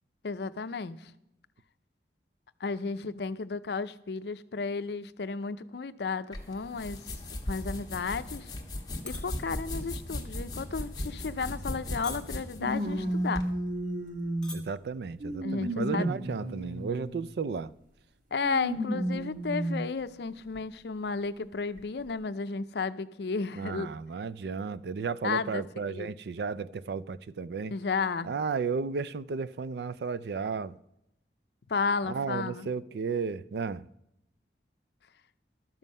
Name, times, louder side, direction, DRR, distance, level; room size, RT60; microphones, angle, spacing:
voice 1, 0.2-1.0 2.6-7.0 7.5-8.5 9.0-13.4 15.4-16.1 18.3-23.9 25.2-25.6 25.9-26.1 27.7-28.3 31.7-32.7, left 4 dB, 70° left, 0.5 m, -33 dB
sound 1, 6.3-13.5, left 1 dB, 25° left, 1.1 m, -38 dB
sound 2, 9.1-9.3 9.7-10.0 10.6-10.8 11.5-11.8 12.0-12.5 13.3-13.4 13.6-13.7 14.3-14.6 14.9-15.2, left 3 dB, 5° left, 1.3 m, -42 dB
sound 3, 11.4-11.5 12.6-14.6 15.2-17.2 18.4-19.8 20.5-20.6 21.8-21.9, right 1 dB, 50° right, 1.4 m, -32 dB
voice 2, 14.5-17.7 23.6-27.7 28.2-30.8 32.0-33.9, right 5 dB, 65° right, 0.4 m, -33 dB
12.5 x 7.3 x 5.4 m
head